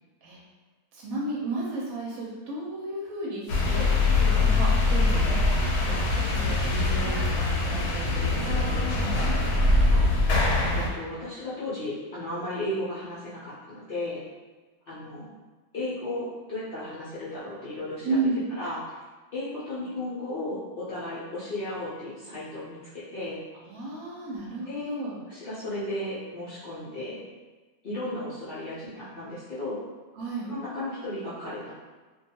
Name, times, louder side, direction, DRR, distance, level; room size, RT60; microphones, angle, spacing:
voice 1, 0.9-5.5 5.8-9.8 18.0-18.4 23.7-25.2 30.2-30.5, right 2 dB, 70° right, -4 dB, 1.0 m, -33 dB
sound 1, 3.5-10.9, left 2 dB, 85° left, 1.1 m, -23 dB
voice 2, 10.7-14.2 14.9-15.3 15.7-18.2 18.5-19.0 19.3-23.4 24.6-24.9 25.3-27.2 27.8-29.8 30.5-31.7, left 1 dB, 60° left, -11 dB, 0.5 m, -35 dB
2.5 x 2.2 x 2.7 m, 1.3 s
omnidirectional pair, 1.7 m